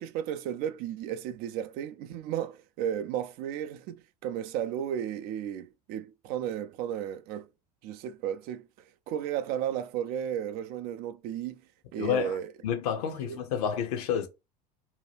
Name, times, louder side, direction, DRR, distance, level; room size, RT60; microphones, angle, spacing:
voice 1, 0.0-7.5 7.8-8.7 9.1-11.6 11.9-12.5 13.2-13.4, right 10 dB, 50° right, 0.4 m, -34 dB
voice 2, 12.0-12.4 12.6-14.3, left 8 dB, 65° left, 0.7 m, -29 dB
2.7 x 2.2 x 3.2 m
hypercardioid pair, 75°, 20 cm